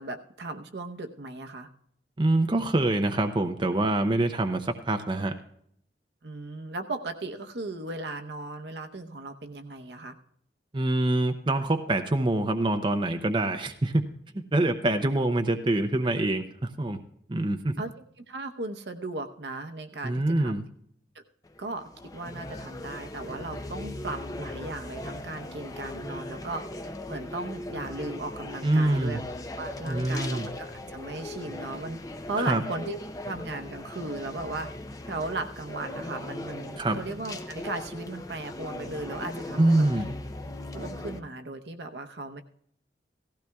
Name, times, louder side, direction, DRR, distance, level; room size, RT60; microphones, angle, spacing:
voice 1, 0.0-1.7 6.2-10.1 17.8-17.9 18.3-20.6 21.1-21.2 21.6-26.6 27.1-29.2 29.6-32.0 32.3-33.0 33.2-34.7 35.1-39.9 40.7-42.4, right 2 dB, 75° right, 7 dB, 0.8 m, -36 dB
voice 2, 2.2-5.3 10.7-14.0 14.5-17.0 17.3-17.7 20.0-20.6 28.6-29.2 29.9-30.5 32.4-32.6 36.8-37.0 39.6-40.1, right 2 dB, 30° right, 6 dB, 0.6 m, -25 dB
sound 1, 21.4-41.2, left 1 dB, 20° left, 0.6 m, -39 dB
17.0 x 15.0 x 2.3 m, 0.69 s
head